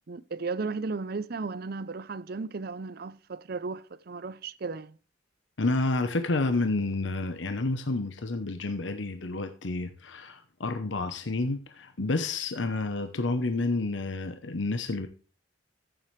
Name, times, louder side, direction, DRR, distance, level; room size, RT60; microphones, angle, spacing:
voice 1, 0.1-5.0, right 4 dB, 55° right, 0.6 m, -35 dB
voice 2, 5.6-15.1, left 2 dB, 85° left, 0.9 m, -29 dB
14.0 x 7.5 x 3.3 m
head